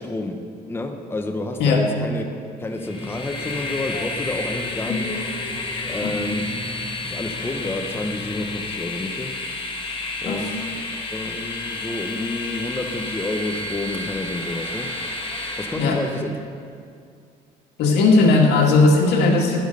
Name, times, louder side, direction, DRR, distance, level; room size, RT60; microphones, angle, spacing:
voice 1, 0.0-2.2 2.6-5.1 5.8-6.5 7.0-9.4 10.2-10.8 11.1-14.9 15.6-16.4, left 2 dB, 15° left, 5 dB, 0.9 m, -29 dB
Train, 2.7-16.2, left 2 dB, 30° left, 1.8 m, -31 dB
sound 1, 2.8-8.6, left 1 dB, 20° right, 2.5 m, -39 dB
voice 2, 17.8-19.6, left 3 dB, 80° left, 0 dB, 2.0 m, -17 dB
11.5 x 11.5 x 5.3 m, 2.3 s
cardioid pair, 110°, 17 cm